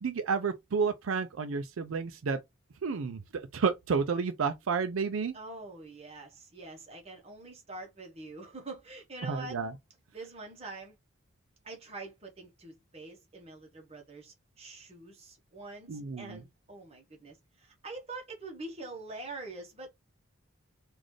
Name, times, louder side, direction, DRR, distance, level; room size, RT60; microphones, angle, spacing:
voice 1, 0.0-2.4 2.8-5.3 9.3-9.7 15.9-16.4, right 5 dB, 75° right, 0.5 m, -31 dB
voice 2, 5.3-9.6 10.1-11.0 11.6-19.9, right 2 dB, 30° right, 1.1 m, -45 dB
4.0 x 2.5 x 3.2 m
head